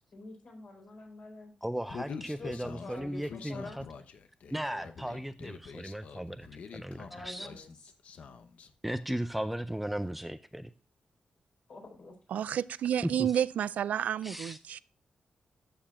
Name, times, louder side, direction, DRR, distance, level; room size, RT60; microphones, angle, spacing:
voice 1, 0.1-1.5 2.4-3.8 7.1-7.9 11.7-12.2, left 3 dB, 55° left, 4.4 m, -46 dB
voice 2, 1.6-3.8 4.5-6.5 6.7-7.5 8.8-10.7 13.0-13.3 14.2-14.6, right 1 dB, 5° right, 0.3 m, -36 dB
Human voice, 1.9-8.7, left 6 dB, 70° left, 0.8 m, -46 dB
voice 3, 12.3-14.8, right 9 dB, 85° right, 0.3 m, -30 dB
13.0 x 6.7 x 2.4 m
wide cardioid pair, 160°, 2 cm